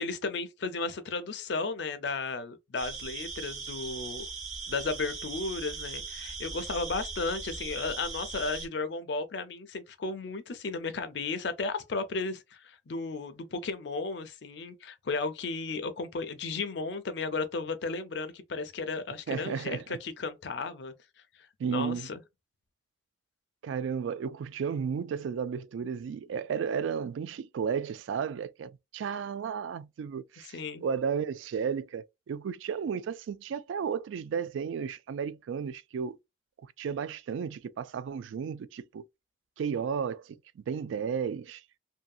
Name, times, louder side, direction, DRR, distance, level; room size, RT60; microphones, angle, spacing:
voice 1, 0.0-4.2 4.7-20.9 21.7-22.2 30.5-30.8, left 3 dB, 70° left, 0.5 m, -34 dB
sound 1, 2.8-8.7, right 4 dB, 40° right, 0.8 m, -39 dB
voice 2, 19.3-19.8 21.6-22.1 23.6-36.2 36.6-39.0 39.6-41.6, right 6 dB, 90° right, 0.3 m, -33 dB
2.7 x 2.6 x 2.3 m
head